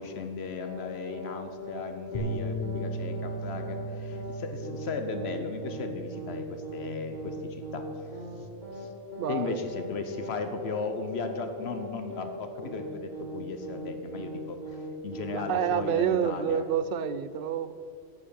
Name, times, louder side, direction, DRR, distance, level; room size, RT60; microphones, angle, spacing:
voice 1, 0.0-7.8 8.7-8.9 9.3-14.6 15.0-16.6, left 4 dB, 80° left, 7 dB, 1.1 m, -36 dB
sound 1, 0.6-1.4 1.6-1.9 2.1-2.4 2.6-2.9 3.1-3.4 3.6-3.9 4.1-4.4 4.6-4.9 5.1-5.4 5.6-5.9 6.1-6.4 6.6-6.9 7.1-7.4 7.6-8.4 8.6-8.9 9.1-9.4 9.6-9.9 10.1-10.4 10.6-10.9 11.1-11.4 11.6-11.9 12.1-12.4 12.6-12.9 13.1-13.4 13.6-13.9 14.1-14.4 14.6-14.9 15.1-15.4 15.6-15.9 16.1-16.4, right 1 dB, 45° right, 2.8 m, -40 dB
sound 2, 2.1-8.4, right 2 dB, 30° left, 1.3 m, -38 dB
voice 2, 9.2-9.7 15.3-17.7, right 8 dB, 65° right, 14 dB, 0.7 m, -28 dB
12.5 x 5.6 x 8.5 m, 2.5 s
omnidirectional pair, 1.1 m